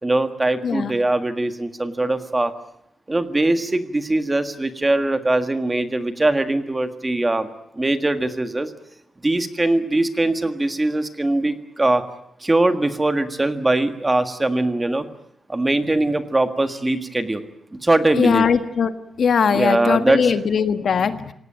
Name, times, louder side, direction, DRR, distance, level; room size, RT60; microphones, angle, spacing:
voice 1, 0.0-2.5 3.1-7.5 7.7-8.7 9.2-12.0 12.4-15.0 15.5-17.4 17.7-18.5 19.5-20.2, right 2 dB, 15° right, 9 dB, 1.7 m, -21 dB
voice 2, 0.6-0.9 18.1-18.9 19.2-21.3, left 6 dB, 60° left, 10 dB, 1.4 m, -20 dB
27.0 x 18.0 x 9.1 m, 0.77 s
wide cardioid pair, 140°, 0 cm